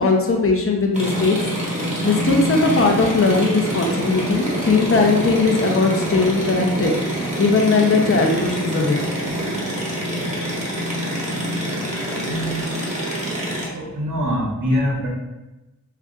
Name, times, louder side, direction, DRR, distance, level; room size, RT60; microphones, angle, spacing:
voice 1, 0.0-1.4 2.0-6.9 7.4-9.0, left 3 dB, 40° left, 1 dB, 0.7 m, -18 dB
sound 1, 0.9-13.7, equal, 20° right, 1.4 m, -26 dB
voice 2, 12.2-12.6 13.7-15.1, equal, 75° right, -5 dB, 1.2 m, -23 dB
5.6 x 2.5 x 2.4 m, 1.0 s
wide cardioid pair, 65°, 33 cm